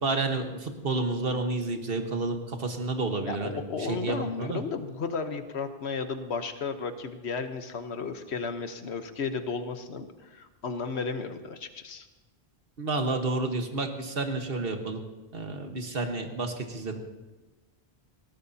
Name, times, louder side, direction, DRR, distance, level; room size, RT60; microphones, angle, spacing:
voice 1, 0.0-4.6 12.8-15.0 15.3-17.0, right 3 dB, 60° right, 5 dB, 1.6 m, -30 dB
voice 2, 3.3-12.1, left 5 dB, 80° left, 8 dB, 1.3 m, -34 dB
20.0 x 17.5 x 2.8 m, 1.2 s
omnidirectional pair, 1.1 m